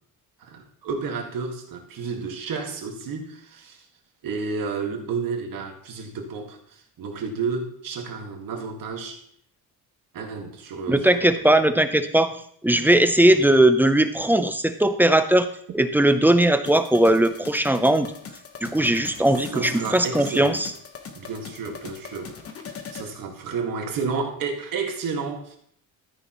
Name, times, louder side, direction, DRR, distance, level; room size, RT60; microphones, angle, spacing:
voice 1, 0.4-3.9 4.2-9.2 10.1-11.4 19.5-20.6 21.1-25.6, right 5 dB, 60° right, 3 dB, 1.9 m, -31 dB
voice 2, 10.9-12.3 12.6-15.5 15.7-18.1 18.6-20.7, right 1 dB, 5° right, 9 dB, 0.6 m, -19 dB
sound 1, 16.7-23.1, left 6 dB, 40° left, 1.2 m, -41 dB
13.0 x 9.7 x 3.0 m, 0.66 s
cardioid pair, 145°, 37 cm